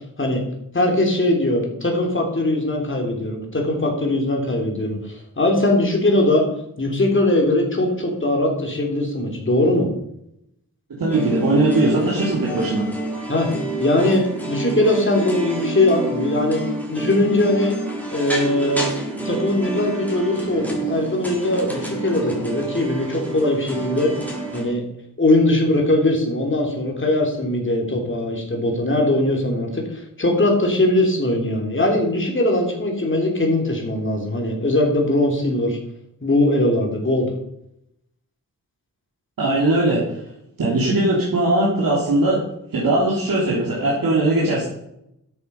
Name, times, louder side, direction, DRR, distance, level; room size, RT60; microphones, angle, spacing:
voice 1, 0.7-6.5 6.8-9.9 13.3-13.5 13.8-16.6 16.9-17.8 18.1-18.9 19.2-24.1 24.5-24.8 25.2-35.8 36.2-37.3, left 1 dB, 35° left, 1 dB, 3.7 m, -20 dB
voice 2, 10.9-12.9 39.4-40.0 40.6-42.4 42.7-44.7, right 2 dB, 80° right, -5 dB, 3.3 m, -19 dB
sound 1, 11.1-24.6, right 2 dB, 5° left, 4.0 m, -28 dB
12.5 x 7.8 x 5.4 m, 0.79 s
wide cardioid pair, 75°, 34 cm